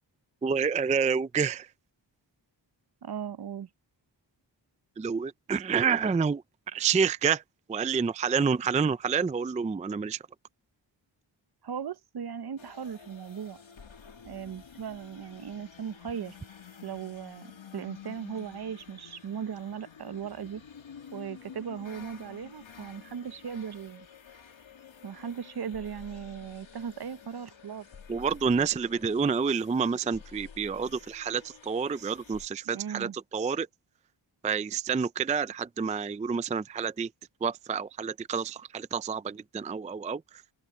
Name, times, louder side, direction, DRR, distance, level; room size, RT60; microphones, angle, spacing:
voice 1, 0.4-1.7 5.0-6.4 6.7-7.4 7.7-10.2 28.1-33.7 34.4-37.1 37.4-40.2, right 6 dB, 20° right, 0.3 m, -28 dB
voice 2, 3.0-3.7 11.6-13.6 14.2-16.4 16.8-20.6 21.1-24.1 25.0-27.9 32.6-33.1, right 7 dB, 55° right, 0.7 m, -38 dB
sound 1, 12.6-32.5, left 7 dB, 80° left, 2.4 m, -50 dB
wide cardioid pair, 115°, 46 cm